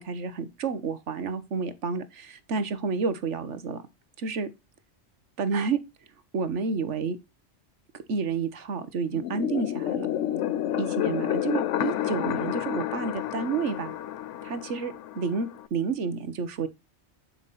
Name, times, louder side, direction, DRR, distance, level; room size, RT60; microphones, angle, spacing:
voice 1, 0.0-3.8 4.2-4.5 5.4-5.8 6.3-7.2 8.1-10.1 10.8-14.0 14.4-16.7, right 5 dB, 80° right, 1.5 m, -30 dB
sound 1, 9.1-15.7, left 12 dB, 85° left, 1.0 m, -30 dB
11.5 x 5.9 x 4.1 m
omnidirectional pair, 1.2 m